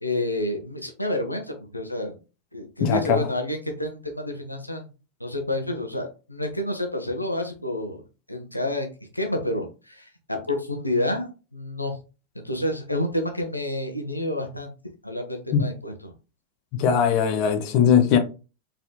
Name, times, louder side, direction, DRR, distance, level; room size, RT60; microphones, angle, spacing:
voice 1, 0.0-2.2 2.5-4.9 5.2-8.0 8.3-8.9 9.1-12.0 12.3-14.7 15.0-16.1, left 1 dB, 85° left, 0.6 m, -29 dB
voice 2, 2.8-3.3 15.5-15.6 16.8-18.2, left 8 dB, 45° left, 0.5 m, -20 dB
4.1 x 2.8 x 2.2 m
figure-of-eight pair, 90°, 0 cm